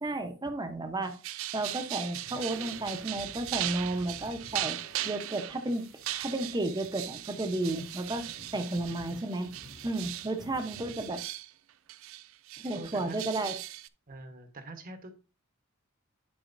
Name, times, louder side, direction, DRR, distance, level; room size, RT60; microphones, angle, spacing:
voice 1, 0.0-1.2 1.5-4.8 5.0-5.9 6.2-8.2 8.5-9.5 9.8-11.2 12.6-13.5, right 2 dB, 20° right, 7 dB, 0.8 m, -32 dB
sound 1, 1.0-11.5 11.9-13.9, right 14 dB, 70° right, 0.4 m, -39 dB
sound 2, 2.2-11.3, right 1 dB, 90° right, 2.8 m, -52 dB
voice 2, 12.7-13.2 14.1-15.1, right 2 dB, 40° right, 7 dB, 1.1 m, -45 dB
11.0 x 4.9 x 2.6 m, 0.32 s
head